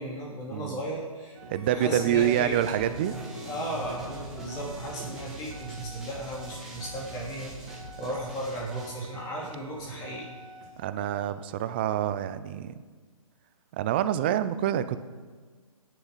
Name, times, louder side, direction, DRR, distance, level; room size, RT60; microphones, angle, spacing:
voice 1, 0.0-1.4 1.7-2.6 3.4-10.3, right 1 dB, 20° left, -3 dB, 3.4 m, -35 dB
voice 2, 0.5-0.8 1.5-3.1 10.8-12.8 13.7-15.0, right 11 dB, 20° right, 13 dB, 0.4 m, -27 dB
sound 1, 1.3-10.7 11.0-11.3, right 2 dB, 40° right, 2.9 m, -46 dB
Drum It, 2.1-8.9, right 2 dB, 5° right, 1.9 m, -42 dB
19.0 x 10.5 x 4.1 m, 1.5 s
figure-of-eight pair, 145°, 18 cm